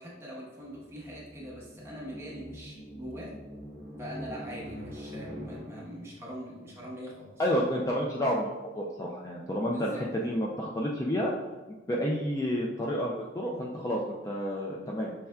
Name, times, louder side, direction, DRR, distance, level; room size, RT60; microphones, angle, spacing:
voice 1, 0.0-3.3 4.0-7.3 9.4-10.0, equal, 15° right, -5 dB, 1.0 m, -42 dB
sound 1, 0.6-6.2, equal, 45° right, 0.9 m, -44 dB
voice 2, 7.4-11.3 11.9-15.1, equal, 20° left, -2 dB, 0.4 m, -30 dB
5.5 x 3.3 x 2.3 m, 1.2 s
head